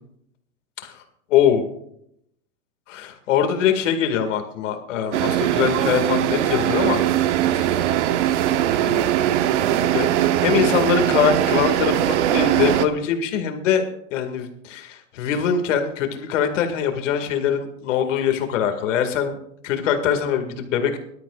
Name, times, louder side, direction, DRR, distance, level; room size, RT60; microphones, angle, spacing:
voice 1, 1.3-1.6 2.9-7.0 7.5-7.7 8.8-9.1 9.8-13.8 14.1-19.4 19.6-21.0, left 8 dB, 70° left, 6 dB, 2.1 m, -23 dB
sound 1, 5.1-12.9, right 12 dB, 65° right, 0.9 m, -20 dB
20.5 x 12.5 x 2.4 m, 0.74 s
supercardioid pair, 150°, 39 cm